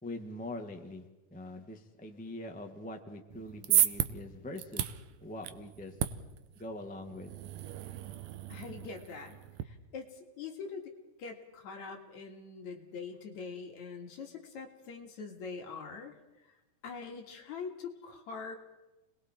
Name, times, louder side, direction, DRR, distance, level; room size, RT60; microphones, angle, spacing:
voice 1, 0.0-4.9 5.2-5.9 6.5-7.3, left 1 dB, 5° left, 4 dB, 0.6 m, -43 dB
sound 1, 3.3-9.6, right 12 dB, 70° right, 2.0 m, -34 dB
voice 2, 8.5-10.9 11.2-16.1 16.8-18.6, left 5 dB, 65° left, 3 dB, 3.4 m, -43 dB
30.0 x 21.0 x 4.5 m, 1.0 s
omnidirectional pair, 3.5 m